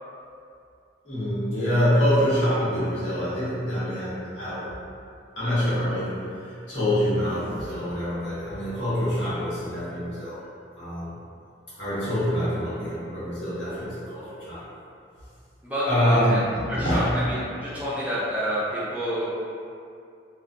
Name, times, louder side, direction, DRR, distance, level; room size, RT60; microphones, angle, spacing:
voice 1, 1.0-4.7 5.4-10.4 10.8-11.2 11.8-14.6 15.8-17.2, equal, 85° left, -11 dB, 1.0 m, -25 dB
voice 2, 15.6-16.4 16.7-19.3, equal, 10° right, -10 dB, 0.4 m, -28 dB
2.5 x 2.2 x 2.3 m, 2.4 s
head